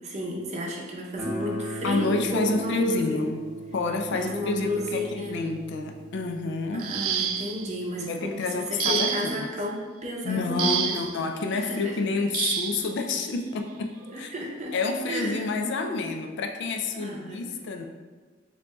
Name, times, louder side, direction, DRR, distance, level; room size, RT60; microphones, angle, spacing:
voice 1, 0.0-3.3 4.1-5.4 6.7-11.0 11.5-12.1 14.1-14.7 15.1-15.5 17.0-17.4, equal, 35° right, -1 dB, 0.7 m, -32 dB
Guitar, 1.2-7.9, right 2 dB, 5° right, 0.9 m, -39 dB
voice 2, 1.8-3.4 3.7-6.9 8.0-9.5 10.2-14.3 14.7-17.9, left 3 dB, 60° left, 4 dB, 0.4 m, -29 dB
sound 1, 6.8-7.7 8.8-9.5 10.6-11.2 12.3-12.8 14.0-14.2 14.7-14.9, right 8 dB, 90° right, 0.4 m, -28 dB
7.3 x 2.6 x 2.3 m, 1.4 s
head